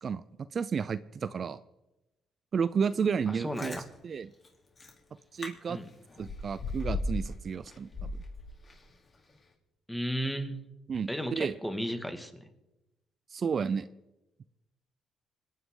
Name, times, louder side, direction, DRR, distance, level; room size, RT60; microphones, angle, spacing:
voice 1, 0.5-1.6 2.5-3.8 4.0-4.3 5.3-5.8 6.2-8.1 10.9-11.5 13.3-13.9, right 6 dB, 50° right, 15 dB, 0.5 m, -31 dB
Chewing mastication, 3.3-3.8 4.4-4.5 4.8-5.0 5.4-5.5 5.8-7.3 7.7-8.9 9.3-9.4, left 2 dB, 35° left, 3.3 m, -36 dB
voice 2, 3.3-3.8 5.7-5.9 9.9-10.6 11.1-12.3, equal, 5° left, 6 dB, 1.9 m, -34 dB
25.5 x 9.5 x 3.8 m, 0.97 s
cardioid pair, 90°, 0 cm